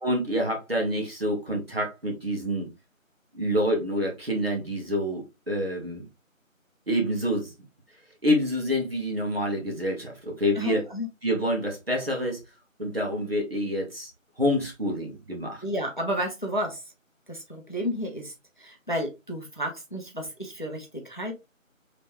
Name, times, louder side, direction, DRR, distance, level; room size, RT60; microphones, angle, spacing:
voice 1, 0.0-2.7 3.3-6.1 6.9-7.5 8.2-10.8 11.2-12.4 12.8-14.1 14.4-15.6, equal, 45° right, 1.4 m, -27 dB
voice 2, 10.6-11.1 15.6-16.8 17.3-18.3 18.6-21.3, equal, 35° left, 0.8 m, -31 dB
3.8 x 3.2 x 2.9 m
figure-of-eight pair, 180°, 41 cm